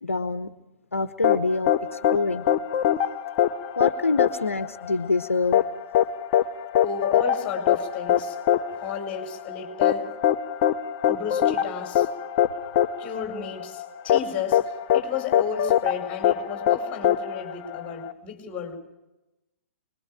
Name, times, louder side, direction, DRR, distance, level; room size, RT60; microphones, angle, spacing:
voice 1, 0.0-0.5 0.9-2.4 3.8-5.7, left 3 dB, 75° left, 11 dB, 1.0 m, -26 dB
sound 1, 1.2-18.1, left 10 dB, 35° left, 0.9 m, -23 dB
voice 2, 6.8-8.4 8.7-10.1 11.1-12.1 13.0-18.8, left 7 dB, 20° left, 3 dB, 4.8 m, -33 dB
25.5 x 21.5 x 4.9 m, 0.98 s
figure-of-eight pair, 115°, 7 cm